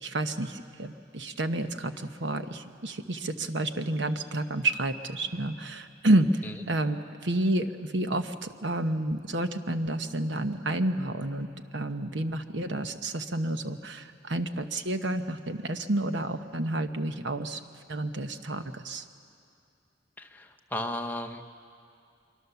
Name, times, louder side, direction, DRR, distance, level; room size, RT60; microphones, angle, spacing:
voice 1, 0.0-6.3 6.7-11.5 11.7-17.6 17.9-19.0, right 1 dB, 65° right, 8 dB, 1.0 m, -30 dB
voice 2, 20.2-21.4, left 1 dB, 10° left, 3 dB, 1.0 m, -35 dB
24.5 x 24.0 x 7.0 m, 2.4 s
head